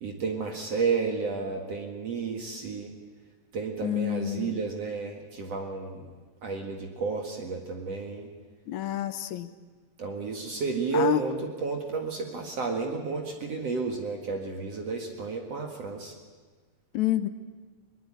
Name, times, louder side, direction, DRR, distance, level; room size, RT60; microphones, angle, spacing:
voice 1, 0.0-2.9 3.5-6.1 6.4-8.3 10.0-16.1, right 4 dB, 50° right, 2 dB, 2.7 m, -32 dB
voice 2, 3.8-4.6 8.7-9.5 10.9-11.2 16.9-17.3, left 12 dB, 70° left, 11 dB, 2.2 m, -28 dB
22.0 x 21.5 x 8.8 m, 1.4 s
omnidirectional pair, 3.9 m